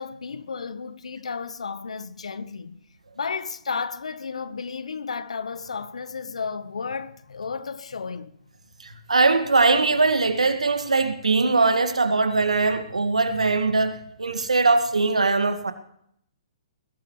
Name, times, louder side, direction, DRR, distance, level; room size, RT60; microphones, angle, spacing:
voice 1, 0.0-2.8 3.1-8.4, left 5 dB, 80° left, 1.1 m, -33 dB
voice 2, 8.8-15.7, right 3 dB, 90° right, 1.8 m, -21 dB
21.0 x 16.0 x 3.2 m
hypercardioid pair, 125°, 3 cm